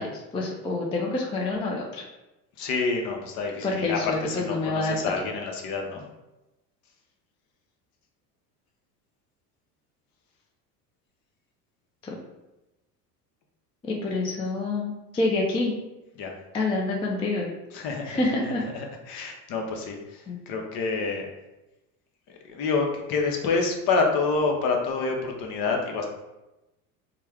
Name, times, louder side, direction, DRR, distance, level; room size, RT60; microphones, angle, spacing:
voice 1, 0.0-2.1 3.6-5.0 12.0-12.2 13.8-15.7 16.5-17.5 18.0-18.6 20.3-20.4, left 2 dB, 15° left, -1 dB, 0.3 m, -27 dB
voice 2, 2.6-6.0 16.2-16.3 17.7-18.2 18.4-21.3 22.5-26.0, left 4 dB, 50° left, 2 dB, 0.8 m, -28 dB
3.3 x 2.2 x 3.4 m, 0.99 s
hypercardioid pair, 75°, 46 cm